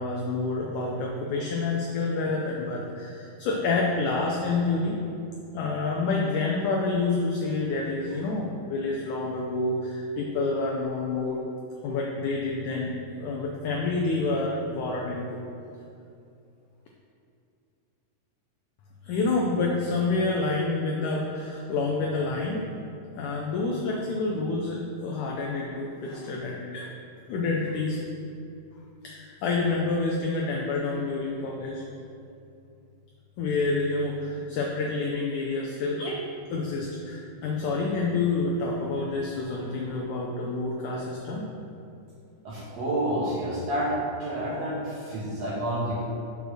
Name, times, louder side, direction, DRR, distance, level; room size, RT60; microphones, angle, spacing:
voice 1, 0.0-5.0 5.5-11.4 11.8-12.9 13.2-15.4 19.1-22.7 23.1-26.9 27.3-28.0 29.0-31.8 33.4-36.2 36.5-41.4, left 3 dB, 90° left, -1 dB, 1.7 m, -28 dB
voice 2, 42.4-43.9 44.2-46.0, right 1 dB, 65° right, -7 dB, 1.7 m, -29 dB
6.4 x 5.3 x 6.2 m, 2.6 s
omnidirectional pair, 4.4 m